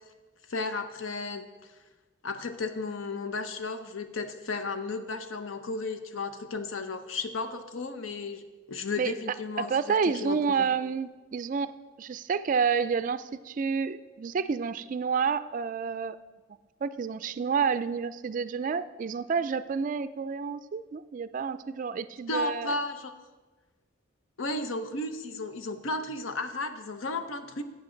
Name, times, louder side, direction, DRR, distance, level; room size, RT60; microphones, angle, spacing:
voice 1, 0.5-1.5 2.2-8.4 8.7-10.7 22.3-23.1 24.4-27.6, left 3 dB, 85° left, 9 dB, 0.8 m, -34 dB
voice 2, 9.6-11.7 12.0-16.2 16.8-22.8, right 6 dB, 40° right, 13 dB, 0.3 m, -29 dB
12.0 x 8.2 x 3.9 m, 1.3 s
head